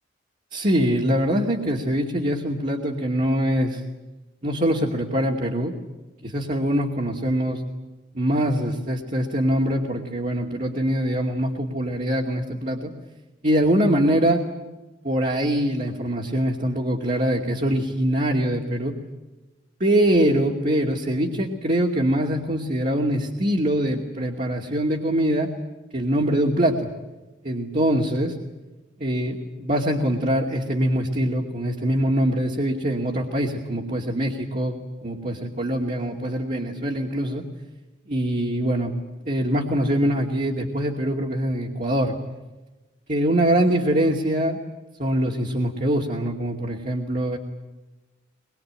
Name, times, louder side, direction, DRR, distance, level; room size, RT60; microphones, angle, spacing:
voice 1, 0.5-3.8 4.4-5.7 6.2-7.6 8.1-12.9 13.4-14.4 15.0-18.9 19.8-25.5 25.9-26.9 27.4-28.3 29.0-34.8 35.0-37.4 38.1-38.9 39.2-42.2 43.1-44.6 45.0-47.4, right 1 dB, 40° right, -1 dB, 2.5 m, -23 dB
24.5 x 22.5 x 8.9 m, 1.1 s
head